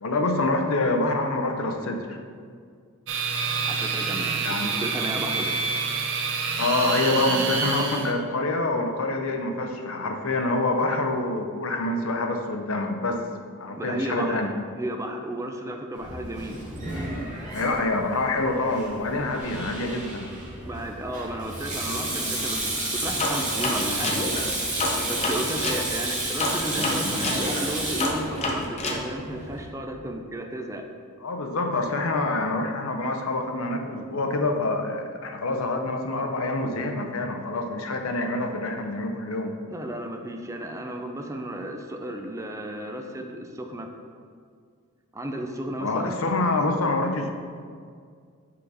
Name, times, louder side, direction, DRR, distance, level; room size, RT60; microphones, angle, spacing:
voice 1, 0.0-2.2 4.4-4.7 6.6-13.2 13.6-14.5 17.5-20.3 31.2-39.5 45.8-47.3, left 2 dB, 65° left, 4 dB, 0.6 m, -26 dB
sound 1, 3.1-8.1, right 5 dB, 60° right, 0.6 m, -27 dB
voice 2, 3.7-5.6 13.8-14.4 14.7-16.6 20.6-24.2 25.1-30.8 39.7-43.9 45.1-46.2, right 1 dB, 15° right, 3 dB, 0.4 m, -33 dB
Sink (filling or washing), 15.9-29.6, right 2 dB, 35° right, 1.6 m, -31 dB
sound 2, 23.2-25.8 26.4-29.0, left 2 dB, 30° left, 0.7 m, -28 dB
5.6 x 4.9 x 4.0 m, 2.1 s
head